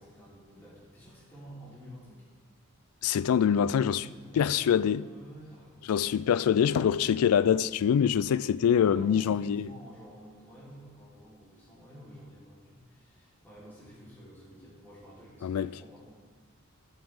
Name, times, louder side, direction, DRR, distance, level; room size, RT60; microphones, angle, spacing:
voice 1, 0.0-2.2 4.0-6.2 8.7-16.1, equal, 10° left, 3.4 m, -50 dB
voice 2, 3.0-4.0 4.4-5.0 5.9-9.7 15.4-15.7, left 8 dB, 80° left, 0.3 m, -24 dB
13.5 x 7.3 x 3.5 m
head